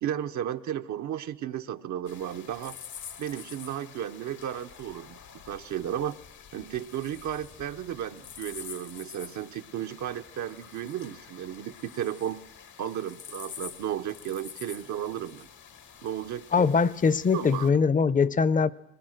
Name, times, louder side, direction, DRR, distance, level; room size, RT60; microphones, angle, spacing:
voice 1, 0.0-2.7 3.2-6.2 6.5-12.4 12.8-15.5 16.0-16.6 17.3-17.7, right 10 dB, 70° right, 7 dB, 0.7 m, -34 dB
sound 1, 2.1-17.7, left 8 dB, 75° left, 1.5 m, -47 dB
voice 2, 16.5-18.7, left 5 dB, 25° left, 18 dB, 0.6 m, -22 dB
21.0 x 19.5 x 6.4 m, 0.97 s
cardioid pair, 90°, 30 cm